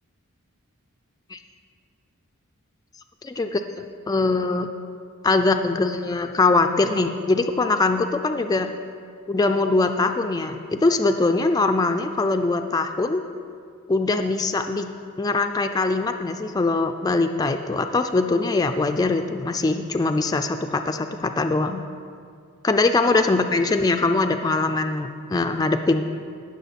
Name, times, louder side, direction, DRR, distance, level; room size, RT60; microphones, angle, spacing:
voice 1, 3.2-4.7 5.2-8.7 9.3-13.2 13.9-14.9 15.2-21.8 22.6-26.1, left 3 dB, 15° left, 6 dB, 0.3 m, -22 dB
17.5 x 6.3 x 4.1 m, 2.3 s
head